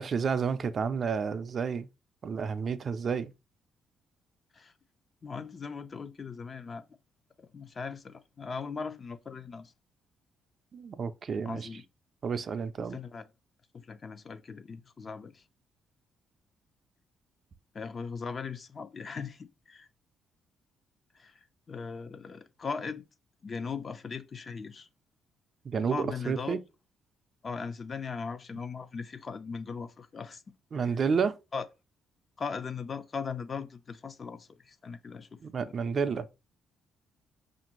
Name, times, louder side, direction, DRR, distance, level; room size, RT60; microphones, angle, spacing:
voice 1, 0.0-1.9 2.2-3.3 10.7-11.7 12.2-13.0 25.6-26.6 30.7-31.3 35.4-36.3, right 6 dB, 50° right, 0.4 m, -30 dB
voice 2, 5.2-6.9 7.4-9.7 11.4-11.8 12.9-13.3 13.7-15.4 17.7-19.9 21.1-23.0 23.4-24.9 25.9-26.6 27.4-30.4 30.7-30.9 31.5-31.7 32.4-35.4 35.6-35.7, left 5 dB, 40° left, 0.4 m, -39 dB
5.1 x 2.5 x 2.9 m
cardioid pair, 90°, 0 cm